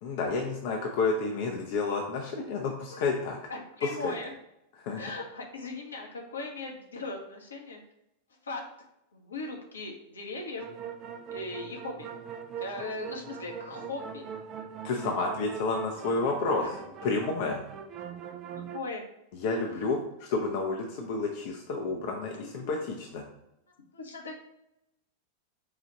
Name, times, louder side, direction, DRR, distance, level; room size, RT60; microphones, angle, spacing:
voice 1, 0.0-3.4 3.8-4.1 4.8-5.0 14.8-16.6 17.0-17.6 19.3-23.2, left 3 dB, 50° left, 1 dB, 0.6 m, -30 dB
voice 2, 3.5-4.3 5.0-7.8 8.4-8.6 9.1-10.6 11.3-12.1 12.6-14.3 16.6-16.7 18.5-19.0 19.7-19.8 22.4-22.7 23.9-24.3, left 3 dB, 70° left, 1 dB, 0.9 m, -38 dB
sound 1, 10.6-18.8, right 7 dB, 30° right, 0.4 m, -41 dB
4.8 x 2.4 x 4.0 m, 0.83 s
figure-of-eight pair, 90°, 0 cm